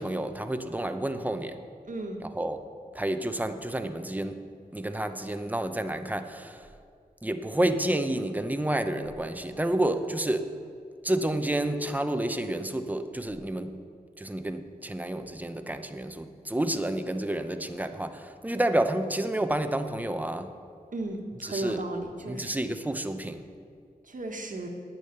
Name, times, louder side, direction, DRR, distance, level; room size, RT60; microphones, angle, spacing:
voice 1, 0.0-1.6 2.2-2.6 2.9-4.4 4.7-6.7 7.2-10.5 11.0-13.8 14.2-20.5 21.4-21.8 22.3-23.5, right 1 dB, 10° right, 8 dB, 0.8 m, -30 dB
voice 2, 1.9-2.2 20.9-22.5 24.1-24.7, right 2 dB, 55° right, 3 dB, 1.5 m, -35 dB
9.7 x 8.8 x 6.8 m, 2.3 s
wide cardioid pair, 65°, 16 cm